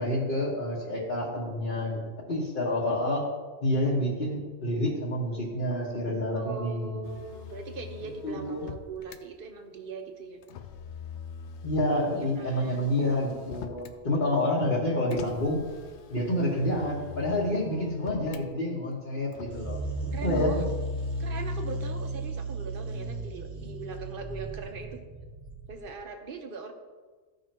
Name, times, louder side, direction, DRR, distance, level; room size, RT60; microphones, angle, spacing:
voice 1, 0.0-2.0 2.3-3.2 3.6-7.1 8.2-8.7 11.6-15.6 16.1-19.8 20.2-20.6, left 1 dB, 50° left, -7 dB, 1.7 m, -28 dB
voice 2, 6.3-10.4 12.1-12.9 20.1-20.6 21.2-25.0 25.7-26.7, right 4 dB, 55° right, 5 dB, 1.1 m, -40 dB
Motor vehicle (road), 7.0-9.2 10.4-14.0 15.1-18.5 19.3-21.3, left 8 dB, 85° left, 0.9 m, -44 dB
sound 1, 19.5-26.0, right 2 dB, 85° right, 1.2 m, -35 dB
15.0 x 5.4 x 3.0 m, 1.4 s
omnidirectional pair, 1.1 m